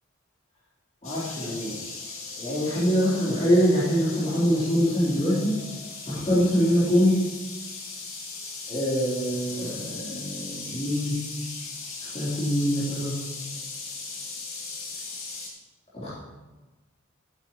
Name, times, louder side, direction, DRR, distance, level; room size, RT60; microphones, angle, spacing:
sound 1, 1.0-15.5, left 4 dB, 70° left, 2.1 m, -38 dB
voice 1, 1.0-1.8 2.4-5.6 6.1-7.2 8.7-11.2 12.1-13.1 15.9-16.2, equal, 30° left, -9 dB, 3.5 m, -24 dB
14.5 x 9.2 x 3.0 m, 1.2 s
head